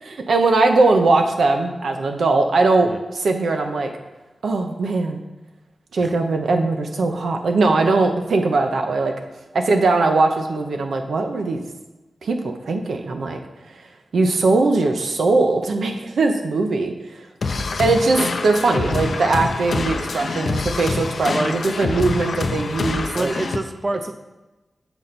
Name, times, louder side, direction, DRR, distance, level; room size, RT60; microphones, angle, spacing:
voice 1, 0.0-3.9 4.4-5.2 5.9-9.1 9.5-11.6 12.2-13.4 14.1-16.9 17.8-23.3, right 3 dB, 90° right, 4 dB, 0.7 m, -20 dB
sound 1, 17.4-23.6, left 3 dB, 65° left, 0.5 m, -25 dB
voice 2, 23.0-24.1, right 2 dB, 30° right, 8 dB, 0.4 m, -27 dB
6.9 x 4.4 x 4.0 m, 1.1 s
wide cardioid pair, 110°, 0 cm